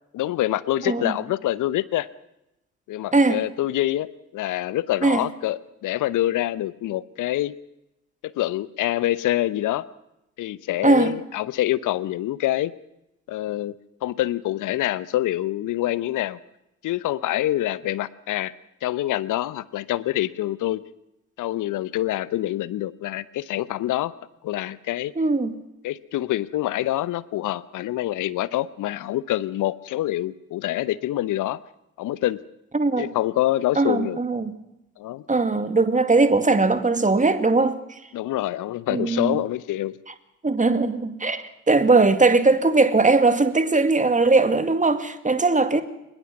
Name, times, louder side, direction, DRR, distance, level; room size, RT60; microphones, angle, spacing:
voice 1, 0.1-2.1 2.9-7.5 8.2-9.8 10.4-12.7 13.3-13.7 14.0-16.4 16.8-18.5 18.8-20.8 21.4-24.1 24.4-25.1 25.8-31.6 32.0-32.4 33.0-34.2 35.0-35.2 38.1-40.0, left 14 dB, 55° left, 0.9 m, -26 dB
voice 2, 10.8-11.1 25.2-25.5 32.7-33.1 33.8-34.5 35.3-38.0 38.9-39.4 40.4-45.8, right 3 dB, 20° right, 2.2 m, -20 dB
23.5 x 21.0 x 6.0 m
figure-of-eight pair, 45°, 38 cm